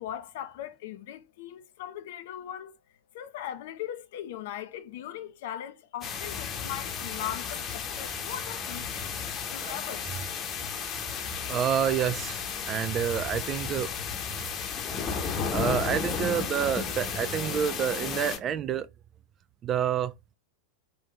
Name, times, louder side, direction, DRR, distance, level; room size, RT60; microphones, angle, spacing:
voice 1, 0.0-2.7 3.1-10.1, left 11 dB, 55° left, 0.5 m, -39 dB
sound 1, 6.0-18.4, left 6 dB, 25° left, 0.9 m, -33 dB
voice 2, 9.4-10.0 11.5-12.4 12.7-13.9 15.5-18.9 19.6-20.1, right 9 dB, 30° right, 0.3 m, -28 dB
3.8 x 2.7 x 3.3 m
figure-of-eight pair, 90°, 0 cm